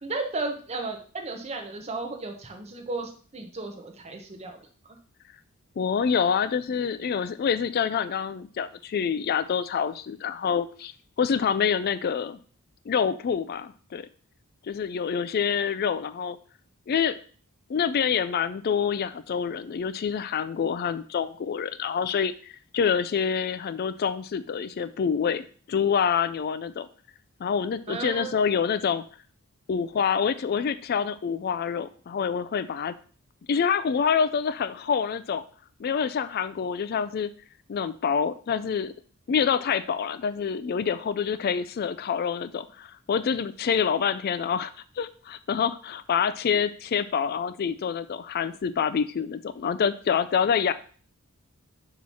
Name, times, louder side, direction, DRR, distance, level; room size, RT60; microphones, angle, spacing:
voice 1, 0.0-4.6 27.9-28.4, right 3 dB, 30° right, 3 dB, 1.0 m, -34 dB
voice 2, 5.8-10.9 11.2-12.4 12.9-14.1 14.7-16.4 16.9-17.2 17.7-26.9 27.4-29.0 29.7-32.9 33.5-35.4 35.8-37.3 37.7-38.9 39.3-50.7, left 7 dB, 45° left, 13 dB, 0.3 m, -26 dB
6.2 x 3.1 x 5.5 m, 0.42 s
head